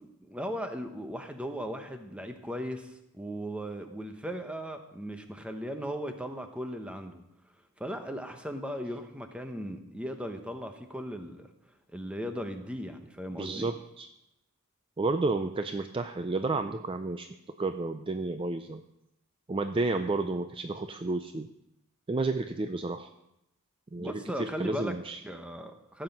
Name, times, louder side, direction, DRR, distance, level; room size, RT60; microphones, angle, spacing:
voice 1, 0.0-7.2 7.8-11.5 11.9-13.7 24.0-25.0 25.2-26.0, equal, 5° right, 6 dB, 0.9 m, -37 dB
voice 2, 13.4-14.1 15.0-17.3 17.6-18.8 19.5-21.5 22.1-23.1 23.9-25.2, right 3 dB, 25° right, 8 dB, 0.4 m, -31 dB
15.5 x 7.8 x 5.3 m, 0.88 s
head